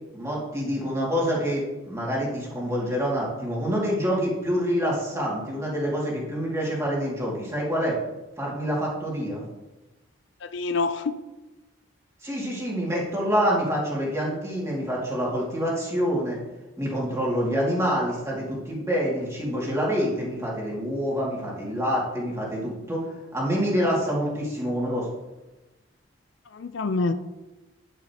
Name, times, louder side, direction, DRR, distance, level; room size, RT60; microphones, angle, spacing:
voice 1, 0.1-8.0 8.4-9.4 12.2-16.4 16.8-23.0 23.3-25.1, equal, 15° right, -4 dB, 2.2 m, -26 dB
voice 2, 10.4-11.1 26.5-27.1, left 3 dB, 65° left, 10 dB, 0.5 m, -26 dB
9.5 x 9.1 x 2.9 m, 1.1 s
head